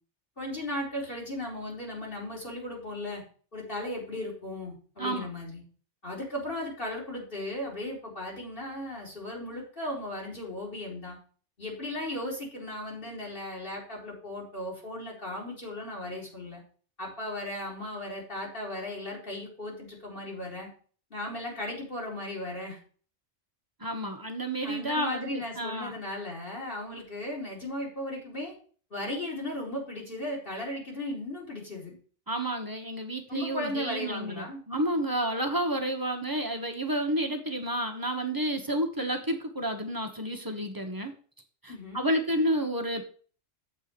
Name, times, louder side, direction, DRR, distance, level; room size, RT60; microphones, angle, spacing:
voice 1, 0.4-3.2 3.5-5.6 6.0-11.2 11.6-16.6 17.0-20.7 21.1-22.8 24.6-28.5 28.9-32.0 33.3-34.6 41.7-42.1, left 1 dB, 45° left, -3 dB, 3.4 m, -36 dB
voice 2, 5.0-5.3 23.8-26.0 32.3-41.1 41.6-43.0, right 1 dB, 20° right, 4 dB, 1.0 m, -30 dB
7.5 x 4.5 x 6.7 m, 0.42 s
omnidirectional pair, 1.2 m